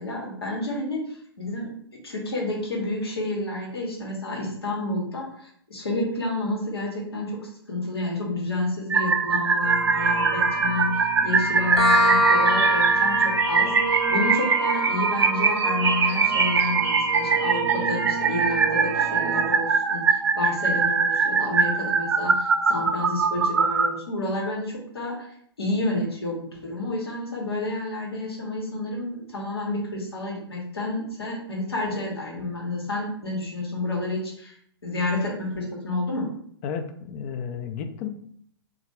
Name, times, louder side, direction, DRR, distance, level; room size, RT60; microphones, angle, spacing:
voice 1, 0.0-1.7 2.0-34.5 34.8-36.3, left 2 dB, 70° left, -2 dB, 1.1 m, -30 dB
sound 1, 8.9-23.9, right 5 dB, 75° right, 0.4 m, -23 dB
sound 2, 9.6-19.5, right 3 dB, 15° right, 0.6 m, -30 dB
sound 3, 11.8-19.2, left 1 dB, 90° left, 0.8 m, -27 dB
voice 2, 36.6-38.1, left 7 dB, 35° left, 8 dB, 0.3 m, -32 dB
3.4 x 2.4 x 3.0 m, 0.65 s
figure-of-eight pair, 110°, 13 cm